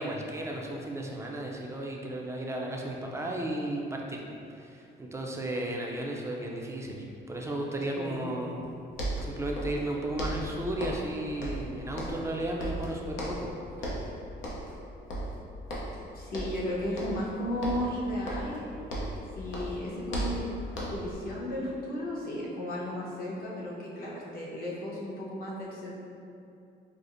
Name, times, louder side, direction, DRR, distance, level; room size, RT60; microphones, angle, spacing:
voice 1, 0.0-4.2 4.6-8.6 9.2-13.5 13.8-14.0, right 1 dB, 15° right, -1 dB, 0.4 m, -34 dB
sound 1, 8.6-8.7 8.9-9.9 10.2-11.1 11.4-12.3 12.6-13.5 13.8-14.1 14.4-14.8 15.1-16.0 16.3-16.6 17.0-17.3 17.6-19.2 19.5-21.1, right 1 dB, 75° left, 0.7 m, -35 dB
voice 2, 16.1-18.7 19.3-20.5 20.9-25.9, left 1 dB, 50° left, -6 dB, 1.0 m, -34 dB
4.8 x 2.0 x 2.5 m, 2.6 s
cardioid pair, 90°, 20 cm